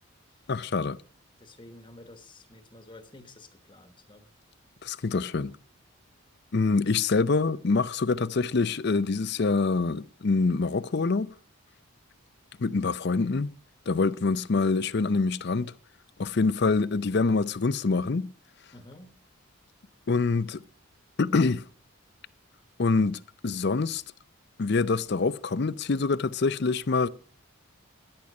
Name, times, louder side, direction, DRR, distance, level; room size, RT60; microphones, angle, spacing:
voice 1, 0.5-1.0 4.8-5.5 6.5-11.3 12.6-13.5 13.9-15.7 16.2-18.3 20.1-20.6 21.2-21.6 22.8-24.0 24.6-27.1, left 4 dB, 50° left, 0.5 m, -25 dB
voice 2, 1.4-4.3 18.7-19.2, left 2 dB, 20° left, 1.2 m, -50 dB
13.5 x 11.0 x 5.3 m
head